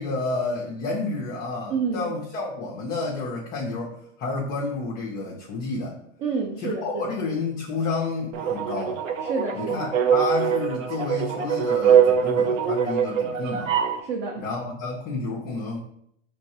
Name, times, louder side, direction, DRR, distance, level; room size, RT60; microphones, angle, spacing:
voice 1, 0.0-6.0 6.6-9.0 9.5-13.8 14.4-15.8, left 3 dB, 25° left, -1 dB, 0.4 m, -30 dB
voice 2, 1.7-2.1 6.2-7.1 9.2-9.9 14.0-14.4, right 4 dB, 40° right, 1 dB, 0.6 m, -29 dB
sound 1, 8.3-14.0, right 8 dB, 80° right, 0.7 m, -23 dB
4.3 x 3.2 x 2.8 m, 0.72 s
hypercardioid pair, 130°, 38 cm